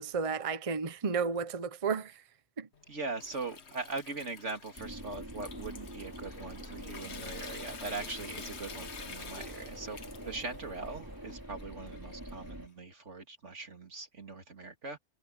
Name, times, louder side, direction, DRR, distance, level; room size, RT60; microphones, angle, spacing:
voice 1, 0.0-2.2 2.6-2.7, right 5 dB, 30° right, 0.8 m, -32 dB
Water tap faucet / Sink (filling or washing) / Trickle dribble, 2.7-12.7, left 5 dB, 65° left, 1.6 m, -49 dB
voice 2, 2.9-10.0 10.2-15.0, right 3 dB, 90° right, 3.0 m, -41 dB
sound 1, 4.8-12.7, right 1 dB, 15° right, 3.1 m, -45 dB
Subway metro underground, 5.4-11.4, equal, 50° right, 8.0 m, -56 dB
omnidirectional pair, 1.2 m